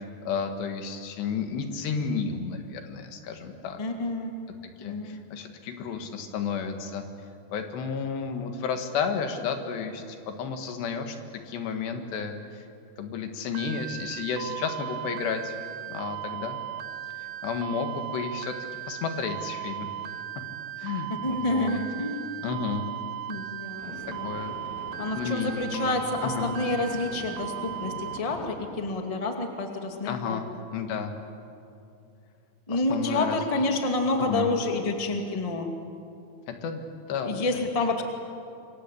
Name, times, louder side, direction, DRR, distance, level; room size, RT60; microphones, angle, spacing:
voice 1, 0.3-3.8 4.6-7.0 7.5-11.2 11.5-12.4 13.0-15.6 15.9-16.6 17.2-18.5 18.9-19.9 20.8-21.8 22.4-22.9 23.9-24.6 25.1-26.6 30.0-31.1 32.7-34.5 36.5-38.0, left 6 dB, 85° left, 6 dB, 4.0 m, -32 dB
voice 2, 3.8-4.3 4.8-5.2 21.2-22.2 22.5-22.6 23.3-24.3 25.0-30.4 32.7-35.7 37.2-38.0, left 2 dB, 15° left, 3 dB, 1.2 m, -29 dB
sound 1, 13.6-28.2, right 12 dB, 85° right, 3.2 m, -37 dB
sound 2, 18.9-19.1 23.8-28.5, left 2 dB, 60° left, 5.4 m, -43 dB
27.5 x 24.0 x 8.5 m, 2.6 s
omnidirectional pair, 4.7 m